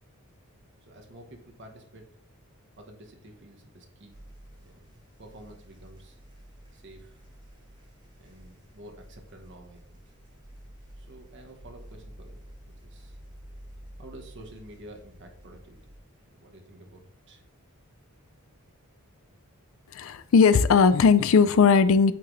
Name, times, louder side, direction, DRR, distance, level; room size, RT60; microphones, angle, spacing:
voice 1, 0.8-2.1 2.7-4.2 4.6-6.2 6.7-7.2 8.2-10.1 11.0-13.2 14.0-15.8 16.3-17.4, right 1 dB, 50° right, 3 dB, 1.1 m, -50 dB
sound 1, 4.1-16.0, equal, 20° right, 1.7 m, -50 dB
voice 2, 19.9-22.1, left 5 dB, 60° left, 13 dB, 0.4 m, -18 dB
8.6 x 3.8 x 3.1 m, 0.69 s
head